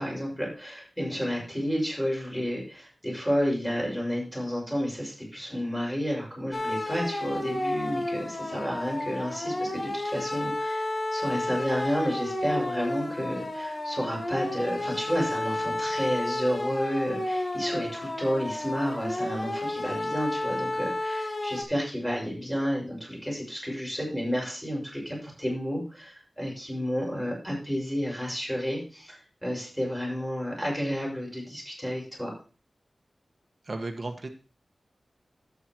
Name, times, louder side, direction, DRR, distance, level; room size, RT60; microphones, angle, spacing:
voice 1, 0.0-32.3, equal, 5° left, -2 dB, 6.2 m, -31 dB
sound 1, 6.5-21.6, left 1 dB, 45° left, 1.8 m, -31 dB
voice 2, 33.6-34.3, right 2 dB, 55° right, 3 dB, 1.5 m, -34 dB
11.5 x 9.2 x 3.1 m, 0.36 s
wide cardioid pair, 70°, 0 cm